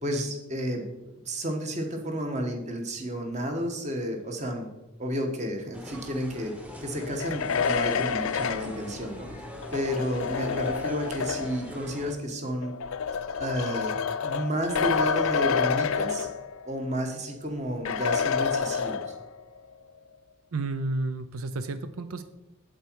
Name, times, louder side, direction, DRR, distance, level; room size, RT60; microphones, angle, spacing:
voice 1, 0.0-1.0 1.2-4.7 5.0-6.5 6.8-9.3 9.7-12.7 13.4-13.9 14.2-16.3 16.6-19.0, equal, 35° right, 3 dB, 1.4 m, -31 dB
sound 1, 5.7-12.1, equal, 5° right, 0.9 m, -42 dB
sound 2, 7.0-11.7 12.6-16.8 17.1-17.2 17.8-19.4, left 6 dB, 90° left, 0.5 m, -29 dB
voice 2, 20.5-22.2, right 2 dB, 90° right, 11 dB, 0.6 m, -31 dB
8.2 x 8.0 x 4.6 m, 0.99 s
head